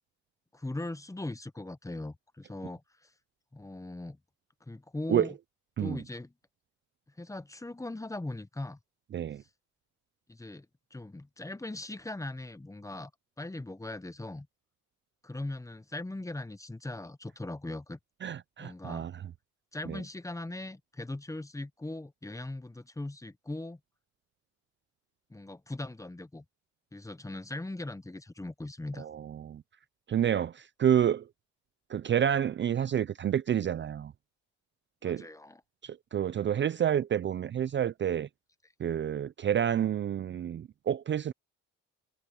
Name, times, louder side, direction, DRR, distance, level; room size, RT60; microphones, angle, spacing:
voice 1, 0.5-2.8 3.5-4.2 4.7-5.3 5.8-6.3 7.2-8.8 10.3-10.7 10.9-13.1 13.4-14.5 15.2-18.0 18.6-19.1 19.7-23.8 25.3-26.4 26.9-29.1 35.0-35.6, left 2 dB, 10° left, 1.1 m, -39 dB
voice 2, 9.1-9.4 18.2-19.3 19.9-20.0 29.0-29.6 30.1-31.3 31.9-34.1 35.0-35.3 35.8-38.3 38.8-41.3, right 9 dB, 40° right, 0.5 m, -29 dB
cardioid pair, 90°, 30 cm